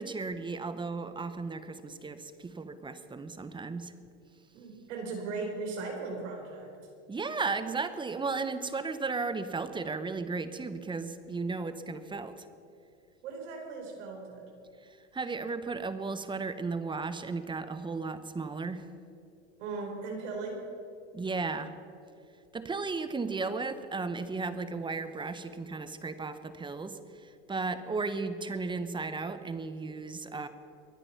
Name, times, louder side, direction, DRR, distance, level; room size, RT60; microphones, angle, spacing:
voice 1, 0.0-3.9 7.1-12.5 14.8-18.9 21.1-21.7 22.5-30.5, right 4 dB, 15° right, 11 dB, 0.9 m, -35 dB
voice 2, 4.5-6.7 13.2-14.5 19.6-20.6, right 3 dB, 80° right, 1 dB, 4.5 m, -38 dB
23.0 x 9.9 x 5.8 m, 2.6 s
supercardioid pair, 115°, 36 cm